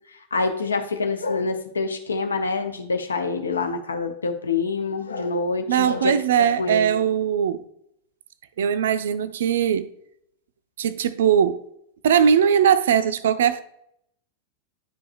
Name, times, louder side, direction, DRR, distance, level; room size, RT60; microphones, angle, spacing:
voice 1, 0.3-6.1 6.6-6.9, left 3 dB, 75° left, 0.5 m, -26 dB
voice 2, 5.7-7.6 8.6-9.9 10.8-11.6 12.0-13.6, right 8 dB, 60° right, 0.3 m, -20 dB
9.9 x 4.7 x 2.4 m
figure-of-eight pair, 90°, 0 cm